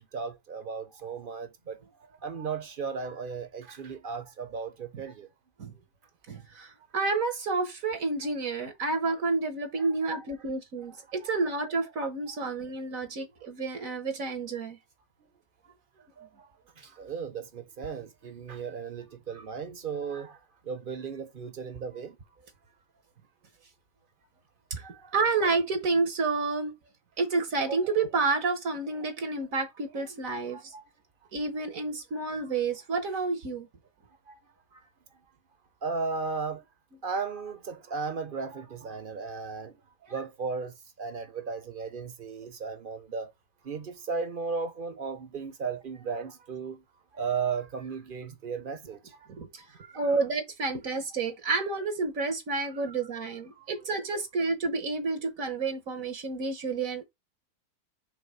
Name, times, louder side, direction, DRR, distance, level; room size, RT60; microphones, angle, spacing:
voice 1, 0.0-5.3 9.8-9.9 11.1-11.4 16.2-16.5 16.8-22.2 24.8-25.1 30.5-30.8 34.3-34.4 34.7-34.8 35.8-36.6 37.0-39.8 40.1-43.3 43.6-46.8 47.1-49.3 49.8-50.2 52.9-53.0 53.6-53.7, right 5 dB, 40° right, 1.0 m, -36 dB
voice 2, 6.3-14.8 24.7-24.8 25.1-26.7 27.2-30.7 31.3-33.7 49.3-49.7 49.9-57.1, right 3 dB, 65° right, 1.6 m, -30 dB
5.3 x 3.7 x 4.8 m
omnidirectional pair, 1.6 m